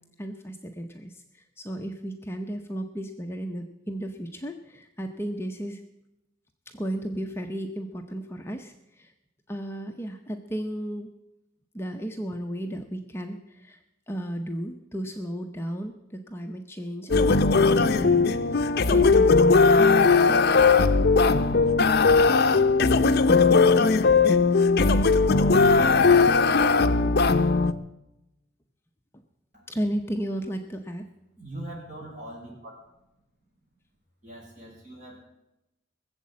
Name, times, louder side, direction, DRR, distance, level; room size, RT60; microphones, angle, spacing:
voice 1, 0.2-5.8 6.7-9.1 9.5-11.1 11.7-13.8 14.1-19.6 29.1-29.2 29.7-31.1, right 1 dB, 10° left, 3 dB, 0.7 m, -34 dB
sound 1, 17.1-27.7, left 4 dB, 55° left, 0.6 m, -19 dB
voice 2, 31.4-32.7 34.2-35.3, right 1 dB, 40° right, -3 dB, 6.0 m, -41 dB
19.5 x 7.5 x 8.4 m, 0.92 s
head